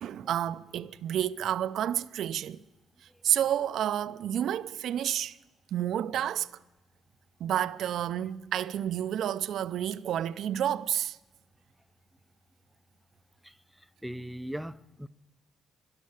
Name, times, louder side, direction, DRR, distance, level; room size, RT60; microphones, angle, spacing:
voice 1, 0.0-2.6 3.2-5.4 5.7-6.5 7.4-11.2, right 10 dB, 75° right, 0.4 m, -30 dB
voice 2, 14.0-15.1, equal, ahead, 0.5 m, -38 dB
13.0 x 12.0 x 8.2 m
cardioid pair, 90°, 0 cm